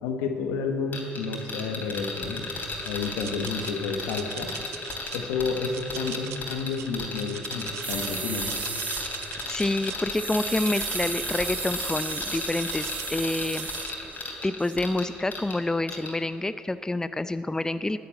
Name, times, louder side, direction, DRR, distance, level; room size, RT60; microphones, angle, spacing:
voice 1, 0.0-2.5 2.8-4.5 5.1-8.5, left 5 dB, 85° left, 5 dB, 1.2 m, -30 dB
sound 1, 0.9-15.6 15.9-16.1, left 3 dB, 45° left, 3.2 m, -35 dB
sound 2, 2.6-3.7 4.1-5.2 5.7-8.1 8.4-10.1 10.5-13.1 13.5-13.9, right 11 dB, 75° right, 0.7 m, -42 dB
sound 3, 7.8-14.3 14.6-14.8, right 5 dB, 40° right, 0.6 m, -35 dB
voice 2, 9.5-13.7 14.4-18.0, left 2 dB, 15° left, 13 dB, 0.4 m, -28 dB
9.7 x 9.4 x 9.1 m, 2.9 s
hypercardioid pair, 55°, 5 cm